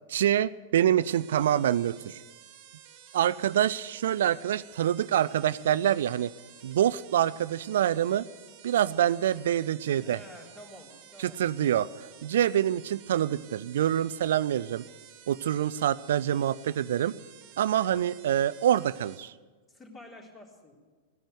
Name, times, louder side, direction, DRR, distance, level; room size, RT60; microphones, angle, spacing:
voice 1, 0.1-2.2 3.1-6.3 6.6-8.3 8.6-10.2 11.2-11.9 12.2-14.8 15.3-17.1 17.6-19.3, right 11 dB, 65° right, 19 dB, 0.4 m, -26 dB
sound 1, 1.0-19.2, right 11 dB, 50° right, 1.5 m, -53 dB
voice 2, 10.0-11.4 19.7-20.7, left 1 dB, 15° left, 0 dB, 3.7 m, -49 dB
17.0 x 10.5 x 8.0 m, 1.4 s
figure-of-eight pair, 95°, 0 cm